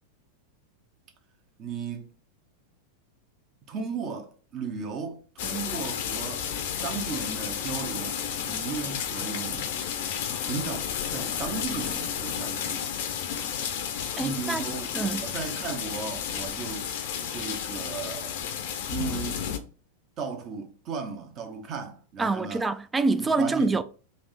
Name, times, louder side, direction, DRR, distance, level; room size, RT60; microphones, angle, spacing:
voice 1, 1.6-2.1 3.7-6.5 6.8-9.7 10.4-12.9 14.2-16.9 17.3-18.4 18.9-19.4 20.2-22.6 23.2-23.8, right 5 dB, 35° right, 0.8 m, -36 dB
sound 1, 5.4-19.6, left 8 dB, 50° left, 0.5 m, -32 dB
voice 2, 14.2-14.6 14.9-15.3 22.2-23.8, right 3 dB, 10° right, 0.3 m, -26 dB
3.4 x 2.7 x 4.0 m
figure-of-eight pair, 90°, 0 cm